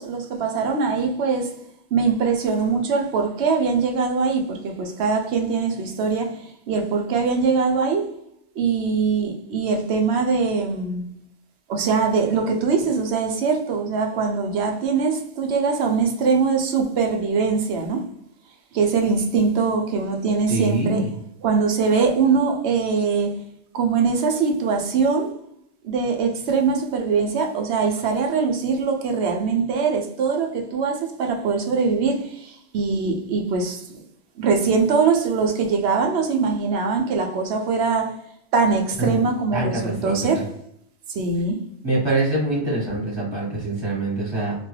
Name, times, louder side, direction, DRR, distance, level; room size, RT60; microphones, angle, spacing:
voice 1, 0.0-1.5 1.9-8.1 8.6-11.1 11.7-18.1 18.7-21.1 21.4-23.4 23.7-25.3 25.8-34.0 34.4-38.2 38.5-40.5 41.1-41.6, right 5 dB, 70° right, 0.9 m, -22 dB
voice 2, 20.5-21.1 39.0-39.2 39.5-40.4 41.8-44.6, right 2 dB, 25° right, 1.4 m, -24 dB
3.0 x 2.2 x 3.1 m
omnidirectional pair, 1.2 m